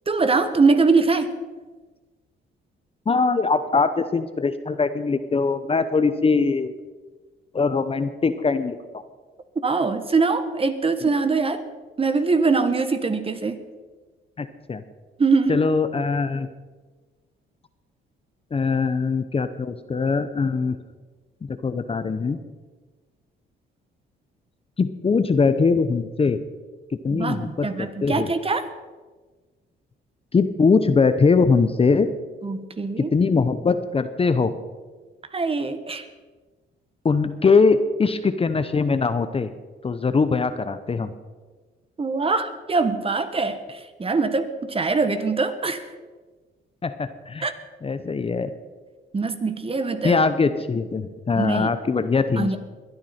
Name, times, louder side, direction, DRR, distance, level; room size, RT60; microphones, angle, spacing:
voice 1, 0.1-1.3 9.6-11.6 12.0-13.6 15.2-15.6 27.1-28.7 32.4-33.1 35.3-36.1 42.0-45.8 47.4-47.5 49.1-50.2 51.4-51.7 52.4-52.6, right 4 dB, 30° right, 10 dB, 1.3 m, -23 dB
voice 2, 3.1-6.7 7.5-9.0 14.4-14.8 15.5-16.5 18.5-20.8 21.5-22.4 24.8-26.4 27.0-28.3 30.3-32.1 33.0-34.5 37.0-39.5 39.8-41.1 46.8-47.5 47.8-48.5 50.0-52.6, left 4 dB, 30° left, 11 dB, 0.8 m, -21 dB
22.5 x 9.4 x 4.4 m, 1.3 s
cardioid pair, 90°, 20 cm